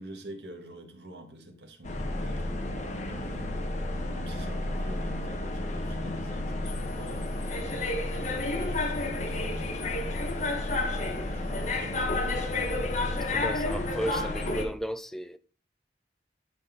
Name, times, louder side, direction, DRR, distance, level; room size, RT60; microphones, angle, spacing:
voice 1, 0.0-2.4 3.1-3.7 4.1-7.3 8.1-10.1 10.6-12.7, right 1 dB, 75° right, 1.8 m, -47 dB
sound 1, 1.8-14.6, left 2 dB, 40° left, 1.1 m, -31 dB
voice 2, 13.1-15.4, equal, ahead, 0.4 m, -35 dB
12.0 x 4.1 x 3.9 m
head